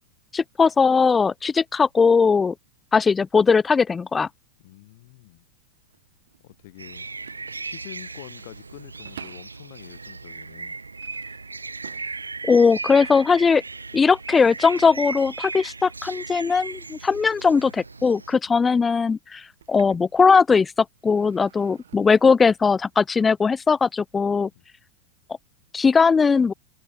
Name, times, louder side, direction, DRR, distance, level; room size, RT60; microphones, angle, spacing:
voice 1, 0.3-2.5 2.9-4.3 12.4-13.6 13.9-19.4 19.7-20.7 21.0-24.5 25.7-26.5, left 5 dB, 15° left, 0.3 m, -19 dB
voice 2, 4.6-5.5 6.4-7.1 7.6-10.8 18.5-18.6 24.5-24.7, left 21 dB, 50° left, 5.9 m, -46 dB
sound 1, 5.7-9.7 10.3-15.5 15.8-20.6 21.0-22.3, right 10 dB, 65° right, 6.7 m, -52 dB
sound 2, 6.8-18.3, right 3 dB, 80° right, 1.8 m, -37 dB
open air
figure-of-eight pair, 90°, 0 cm